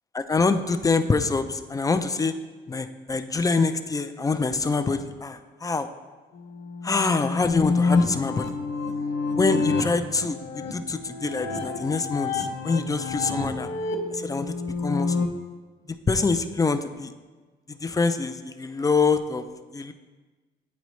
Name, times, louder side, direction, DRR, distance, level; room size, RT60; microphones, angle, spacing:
voice 1, 0.1-2.3 2.7-5.9 6.8-8.5 9.3-13.7 14.1-14.5 14.8-15.1 16.1-17.1 17.7-19.4 19.7-19.9, left 4 dB, 15° left, 9 dB, 0.4 m, -25 dB
sound 1, 6.4-15.3, left 4 dB, 65° left, 0.8 m, -28 dB
9.5 x 4.0 x 3.1 m, 1.3 s
cardioid pair, 90°, 20 cm